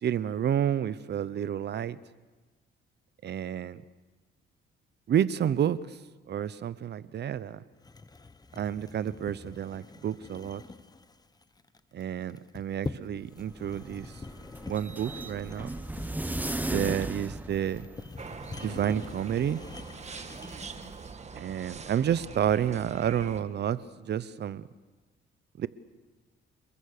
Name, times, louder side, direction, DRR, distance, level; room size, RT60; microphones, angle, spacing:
voice 1, 0.0-2.0 3.2-3.8 5.1-6.0 6.3-7.6 8.5-10.6 11.9-14.1 14.7-15.7 16.7-17.9 18.6-19.6 21.3-24.7 25.6-25.7, right 9 dB, 55° right, 17 dB, 0.9 m, -30 dB
sound 1, 7.8-21.1, left 3 dB, 20° left, 1.1 m, -44 dB
sound 2, 13.3-18.3, right 1 dB, 10° right, 1.2 m, -36 dB
sound 3, 18.2-23.4, right 5 dB, 30° right, 1.7 m, -43 dB
28.5 x 21.5 x 6.8 m, 1.3 s
cardioid pair, 95°, 21 cm